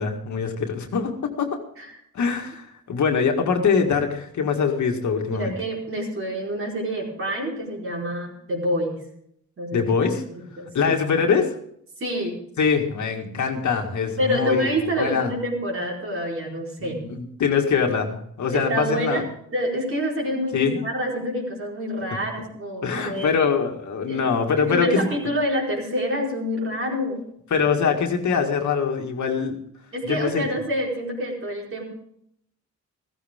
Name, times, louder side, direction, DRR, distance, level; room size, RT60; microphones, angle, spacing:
voice 1, 0.0-1.6 2.1-5.5 9.7-10.2 10.7-11.5 12.6-14.7 15.0-15.3 16.8-19.2 20.5-20.8 22.8-25.1 27.5-29.5 30.0-30.5, left 6 dB, 65° left, 3 dB, 2.0 m, -23 dB
voice 2, 5.3-9.0 9.6-9.9 10.3-11.0 12.0-12.3 14.1-17.0 18.5-19.2 19.5-23.4 24.1-24.3 24.6-27.2 29.9-31.8, equal, 45° right, -1 dB, 4.6 m, -27 dB
15.0 x 15.0 x 3.6 m, 0.69 s
cardioid pair, 120°, 31 cm